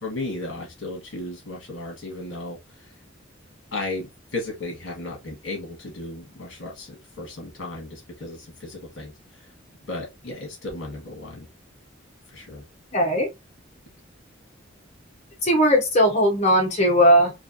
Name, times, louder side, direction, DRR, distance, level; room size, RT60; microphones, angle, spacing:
voice 1, 0.0-2.9 3.7-9.5 9.9-11.5 12.3-12.6, left 2 dB, 65° left, 1.3 m, -35 dB
voice 2, 12.9-13.3 15.4-17.3, equal, 35° left, 1.0 m, -18 dB
3.2 x 2.6 x 2.5 m
head